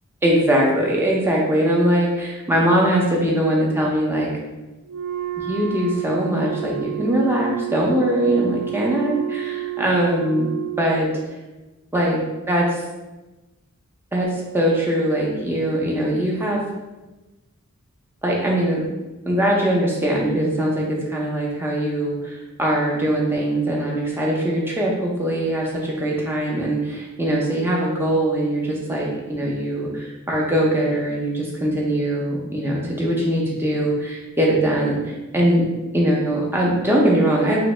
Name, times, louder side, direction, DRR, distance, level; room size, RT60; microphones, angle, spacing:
voice 1, 0.2-4.3 5.4-10.5 10.8-11.1 11.9-12.2 12.5-12.8 14.1-16.6 18.2-18.8 19.2-35.0 35.3-35.7 35.9-37.6, right 1 dB, 10° right, -3 dB, 0.5 m, -21 dB
Wind instrument woodwind instrument, 4.9-11.0, right 13 dB, 80° right, 0.3 m, -30 dB
2.9 x 2.5 x 3.1 m, 1.1 s
head